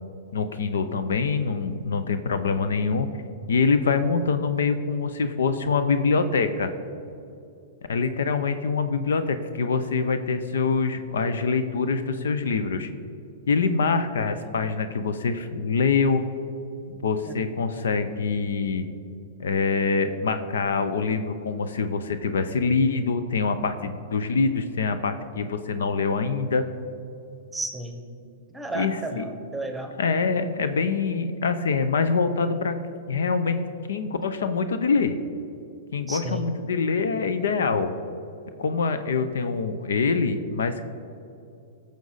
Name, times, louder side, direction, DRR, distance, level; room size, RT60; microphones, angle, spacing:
voice 1, 0.3-3.1 3.5-6.7 7.9-12.9 13.5-16.2 16.9-18.9 19.4-26.6 28.7-29.3 30.0-32.7 33.1-33.6 33.9-35.1 35.9-37.9 38.6-40.9, left 4 dB, 75° left, 10 dB, 0.7 m, -25 dB
voice 2, 27.5-28.0 28.5-29.9 36.1-36.4, right 2 dB, 5° right, 5 dB, 1.2 m, -33 dB
15.5 x 6.6 x 4.0 m, 2.6 s
hypercardioid pair, 115°, 0 cm